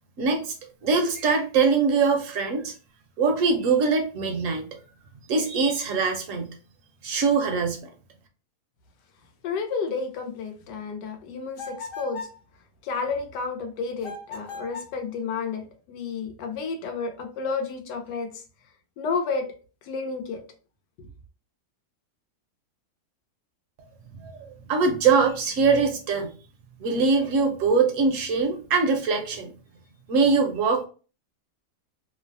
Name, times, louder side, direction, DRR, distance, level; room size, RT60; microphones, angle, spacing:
voice 1, 0.2-0.5 0.8-2.7 3.2-4.7 5.3-6.5 7.0-7.8 24.2-24.3 24.7-26.3 26.8-29.5 30.1-30.9, right 4 dB, 65° right, 4 dB, 0.9 m, -22 dB
voice 2, 9.4-12.3 12.8-18.4 19.0-19.5 19.8-20.4 21.0-21.1, left 4 dB, 85° left, 5 dB, 1.3 m, -31 dB
sound 1, 11.6-12.4 14.0-15.0, left 3 dB, 60° left, 1.0 m, -38 dB
3.1 x 2.0 x 2.5 m, 0.36 s
omnidirectional pair, 1.8 m